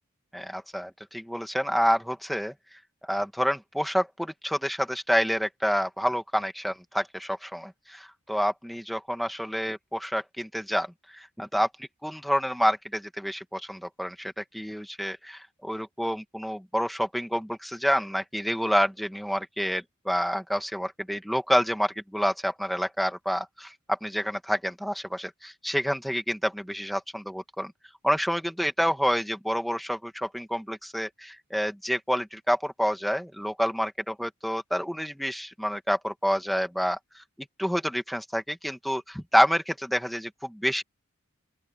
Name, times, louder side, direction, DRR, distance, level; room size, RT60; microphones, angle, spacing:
voice 1, 0.3-2.5 3.0-10.9 11.1-27.7 28.0-37.2 37.6-40.8, equal, ahead, 1.8 m, -28 dB
open air
head